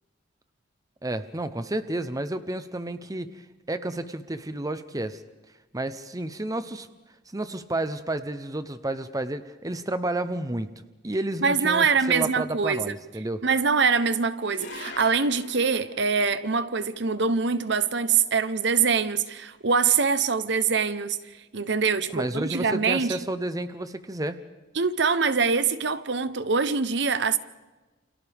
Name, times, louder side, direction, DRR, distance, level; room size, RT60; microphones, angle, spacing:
voice 1, 1.0-5.2 5.7-6.9 7.3-10.7 11.0-13.4 22.1-24.4, right 1 dB, 20° right, 0.8 m, -31 dB
voice 2, 11.4-12.9 13.4-23.2 24.7-27.4, right 5 dB, 65° right, 1.0 m, -24 dB
sound 1, 14.4-20.9, left 3 dB, 90° left, 5.6 m, -47 dB
29.0 x 28.0 x 3.6 m
head